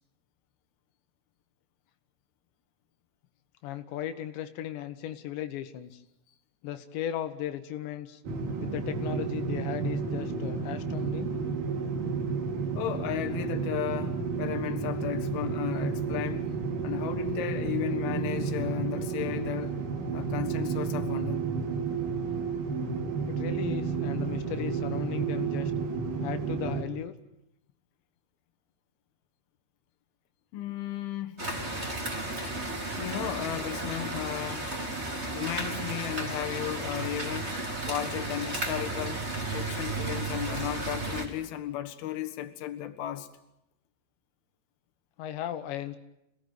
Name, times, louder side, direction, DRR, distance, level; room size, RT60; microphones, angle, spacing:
voice 1, 3.6-6.0 6.6-8.2 8.6-11.3 23.3-25.7 26.2-27.1 45.2-46.0, left 11 dB, 90° left, 3.5 m, -36 dB
sound 1, 8.2-26.8, right 5 dB, 55° right, 3.5 m, -31 dB
voice 2, 12.8-16.5 16.8-19.8 20.1-21.4 30.5-31.4 33.0-34.8 35.2-37.6 37.9-39.2 39.5-43.3, left 12 dB, 70° left, 3.2 m, -34 dB
sound 2, 31.4-41.3, right 2 dB, 15° right, 3.5 m, -33 dB
27.0 x 18.0 x 9.3 m
omnidirectional pair, 5.0 m